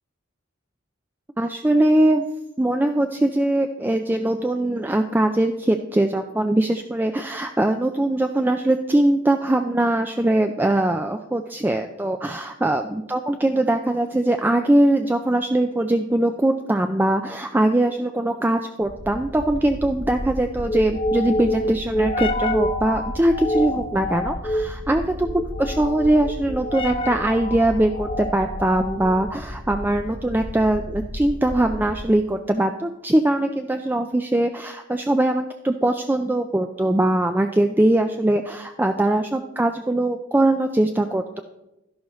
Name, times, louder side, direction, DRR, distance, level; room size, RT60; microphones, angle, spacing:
voice 1, 1.4-2.2 2.6-41.4, right 1 dB, 10° right, 6 dB, 0.3 m, -21 dB
sound 1, 18.9-32.2, left 1 dB, 30° left, 0.7 m, -28 dB
12.0 x 11.0 x 3.1 m, 0.97 s
head